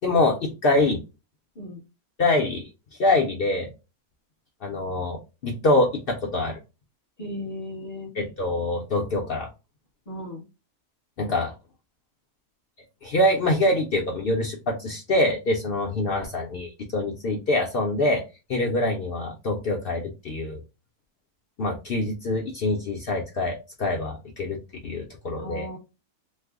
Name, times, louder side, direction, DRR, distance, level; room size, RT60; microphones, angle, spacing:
voice 1, 0.0-1.0 2.2-2.7 3.0-3.7 4.6-6.6 8.2-9.5 11.2-11.5 13.0-18.2 18.5-20.6 21.6-25.7, left 2 dB, 80° left, 1 dB, 0.5 m, -25 dB
voice 2, 7.2-8.1 10.1-10.5 25.4-25.8, left 1 dB, 30° left, -1 dB, 0.9 m, -36 dB
3.2 x 2.0 x 3.4 m, 0.28 s
omnidirectional pair, 1.7 m